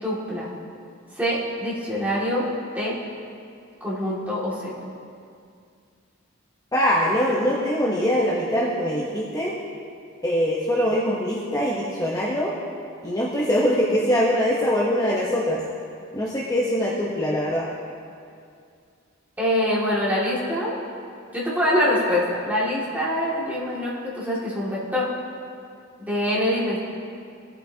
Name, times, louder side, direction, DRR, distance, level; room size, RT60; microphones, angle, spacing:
voice 1, 0.0-0.5 1.1-3.0 3.8-4.7 14.0-14.2 19.4-20.8 21.3-25.1 26.0-26.8, equal, 10° right, -8 dB, 2.2 m, -24 dB
voice 2, 6.7-9.5 10.2-12.5 13.0-15.6 16.1-17.7, equal, 20° left, -5 dB, 1.0 m, -23 dB
17.5 x 8.0 x 2.8 m, 2.3 s
head